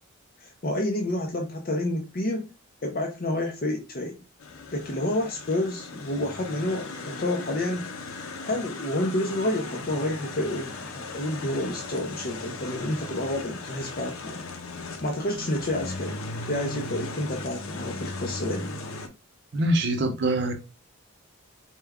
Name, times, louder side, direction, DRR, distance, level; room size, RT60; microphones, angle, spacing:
voice 1, 0.4-2.4 2.8-4.2 4.7-7.9 8.4-14.4 15.0-18.8, left 1 dB, 45° left, 0.6 m, -29 dB
sound 1, 4.4-19.1, left 3 dB, 85° left, 0.7 m, -37 dB
voice 2, 19.5-20.5, right 1 dB, 55° right, 0.6 m, -24 dB
4.4 x 2.3 x 3.4 m
head